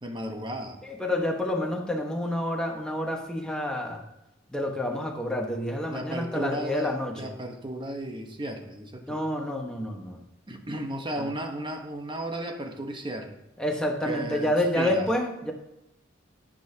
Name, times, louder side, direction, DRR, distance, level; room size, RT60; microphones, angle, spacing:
voice 1, 0.0-0.8 5.8-9.2 10.5-13.4 14.0-15.1, right 1 dB, 25° right, 4 dB, 1.1 m, -34 dB
voice 2, 0.8-4.0 4.5-7.3 9.1-10.2 11.2-11.3 13.6-15.5, left 1 dB, 5° left, 0 dB, 1.3 m, -28 dB
10.0 x 10.0 x 2.9 m, 0.90 s
head